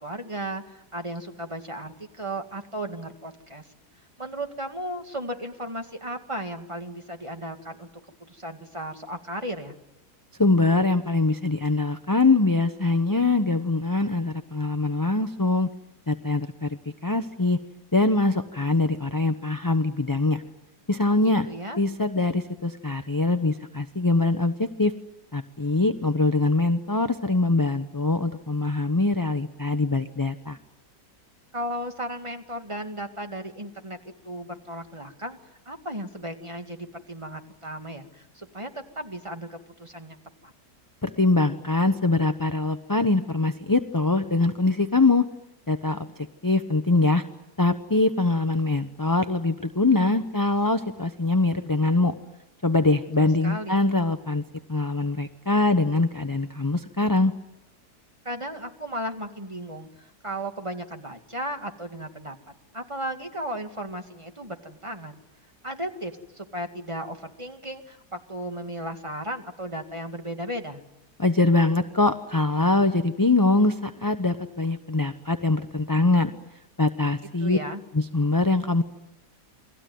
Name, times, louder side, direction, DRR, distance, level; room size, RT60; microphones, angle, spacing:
voice 1, 0.0-3.7 4.2-7.9 8.2-9.8 21.5-21.8 31.5-35.4 35.7-40.2 40.4-40.5 53.2-53.8 58.2-62.4 62.7-65.2 65.6-70.8 77.4-77.8, right 1 dB, 20° right, 5 dB, 2.0 m, -35 dB
voice 2, 10.4-15.7 16.1-16.7 17.0-17.6 17.9-20.4 20.9-21.5 21.8-24.9 25.3-30.6 41.0-45.2 45.7-46.0 46.4-47.2 47.6-52.1 52.6-54.4 54.7-57.3 71.2-76.3 76.8-77.6 77.9-78.8, left 2 dB, 20° left, 8 dB, 0.7 m, -23 dB
29.5 x 21.0 x 9.4 m, 0.91 s
omnidirectional pair, 1.7 m